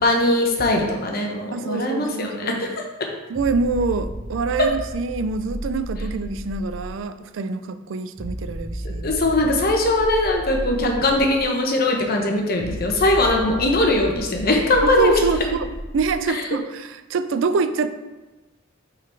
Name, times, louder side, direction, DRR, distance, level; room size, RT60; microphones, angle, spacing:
voice 1, 0.0-2.7 9.0-15.2, left 1 dB, 50° left, 1 dB, 0.9 m, -20 dB
voice 2, 1.5-2.6 3.3-9.1 14.8-17.9, right 4 dB, 70° right, 11 dB, 0.4 m, -25 dB
sound 1, 3.3-7.0 8.2-11.4 12.6-16.3, right 1 dB, 40° right, 0.8 m, -33 dB
5.8 x 3.9 x 4.5 m, 1.1 s
head